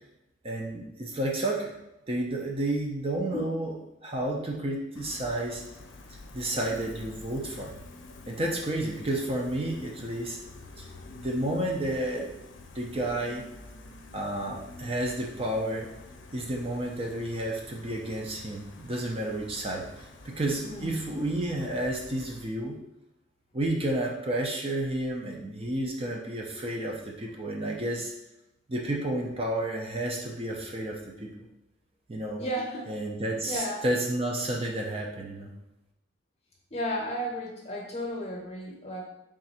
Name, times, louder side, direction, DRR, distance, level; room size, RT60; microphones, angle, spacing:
voice 1, 0.4-1.7 2.1-3.7 4.0-5.6 6.3-7.7 8.3-10.4 10.8-10.9 11.2-12.3 12.7-13.4 14.1-15.9 16.3-22.7 23.5-28.1 28.7-31.3 32.1-32.4 32.9-35.5, right 1 dB, 30° right, -1 dB, 0.5 m, -31 dB
Gull seagull, 4.9-22.4, left 2 dB, 75° left, 0.5 m, -48 dB
voice 2, 20.6-20.9 32.4-32.9 33.4-33.8 36.7-39.0, equal, 35° left, -1 dB, 0.8 m, -33 dB
3.6 x 2.5 x 4.2 m, 0.91 s
head